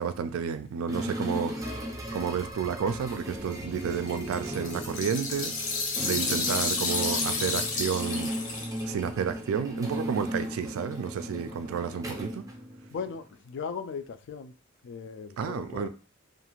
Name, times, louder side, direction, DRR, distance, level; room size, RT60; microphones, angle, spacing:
voice 1, 0.0-1.7 2.1-5.5 6.0-8.3 8.9-12.4 15.4-15.9, right 7 dB, 80° right, 0.3 m, -31 dB
sound 1, 0.9-13.2, equal, 15° right, 0.5 m, -36 dB
sound 2, 3.8-9.0, left 3 dB, 80° left, 0.8 m, -31 dB
voice 2, 12.9-14.5 14.8-15.9, left 6 dB, 60° left, 0.3 m, -37 dB
2.5 x 2.4 x 3.0 m
head